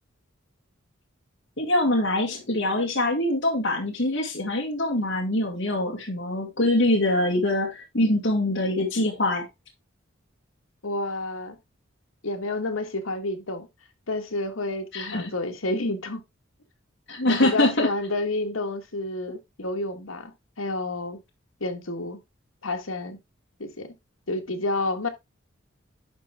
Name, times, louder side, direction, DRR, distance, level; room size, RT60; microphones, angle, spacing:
voice 1, 1.6-9.5 14.9-15.3 17.1-17.9, left 1 dB, 60° left, 2.1 m, -24 dB
voice 2, 10.8-11.6 12.2-13.7 14.1-16.2 17.3-20.3 20.6-21.2 21.6-22.2 22.6-23.2 23.6-23.9 24.3-25.1, left 2 dB, 85° left, 1.6 m, -29 dB
11.0 x 4.7 x 3.5 m
head